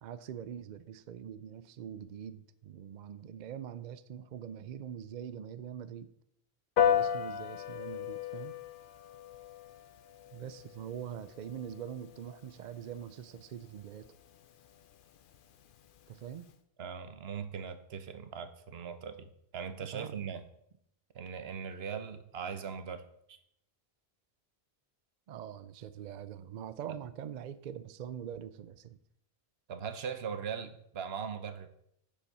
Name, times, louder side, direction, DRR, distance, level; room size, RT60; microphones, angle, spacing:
voice 1, 0.0-6.1 6.8-8.5 10.3-14.1 16.1-16.5 19.9-20.1 25.3-29.0, right 9 dB, 55° right, 14 dB, 0.5 m, -43 dB
Piano, 6.8-16.5, left 9 dB, 60° left, 0.7 m, -36 dB
voice 2, 16.8-20.4 21.1-23.4 29.7-31.7, right 7 dB, 75° right, 10 dB, 1.0 m, -40 dB
7.3 x 7.1 x 5.4 m, 0.74 s
omnidirectional pair, 1.1 m